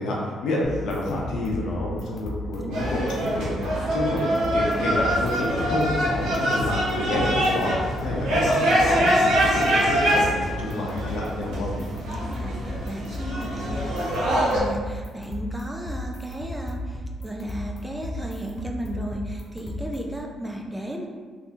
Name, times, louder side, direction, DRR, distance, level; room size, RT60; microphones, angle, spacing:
voice 1, 0.0-11.7, left 1 dB, 80° left, -3 dB, 0.7 m, -29 dB
sound 1, 0.6-20.2, left 1 dB, 45° left, 0.5 m, -35 dB
voice 2, 2.5-3.0 10.8-11.0 12.1-21.1, right 1 dB, 10° right, 1 dB, 0.4 m, -35 dB
sound 2, 2.7-14.6, equal, 85° right, 0.8 m, -24 dB
3.3 x 2.7 x 2.7 m, 1.5 s
cardioid pair, 90°, 0 cm